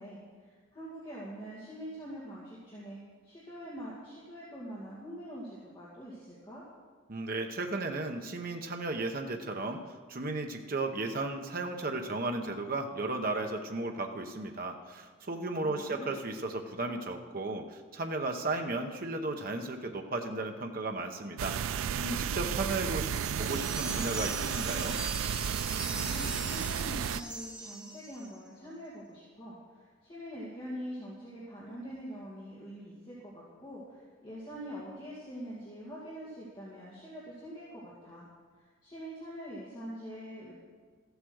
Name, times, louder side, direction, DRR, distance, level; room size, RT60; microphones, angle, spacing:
voice 1, 0.0-3.0 3.2-6.6 15.6-16.2 25.9-38.3 38.6-40.5, equal, 25° left, -8 dB, 2.4 m, -44 dB
voice 2, 7.1-25.0, right 2 dB, 45° right, 4 dB, 0.8 m, -35 dB
sound 1, 21.4-27.2, right 8 dB, 80° right, 0.4 m, -33 dB
sound 2, 23.0-28.4, right 1 dB, 5° right, 1.3 m, -41 dB
14.0 x 8.2 x 6.3 m, 1.5 s
head